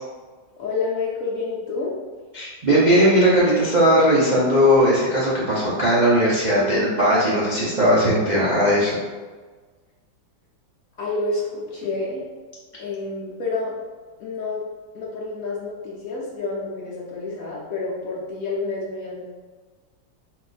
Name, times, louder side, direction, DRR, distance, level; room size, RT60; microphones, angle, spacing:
voice 1, 0.6-2.0 11.0-12.2 12.8-13.8 14.2-14.6 14.9-19.2, left 3 dB, 65° left, -5 dB, 0.9 m, -28 dB
voice 2, 2.3-8.9, equal, 70° right, -8 dB, 0.4 m, -18 dB
4.2 x 2.5 x 4.0 m, 1.4 s
omnidirectional pair, 2.1 m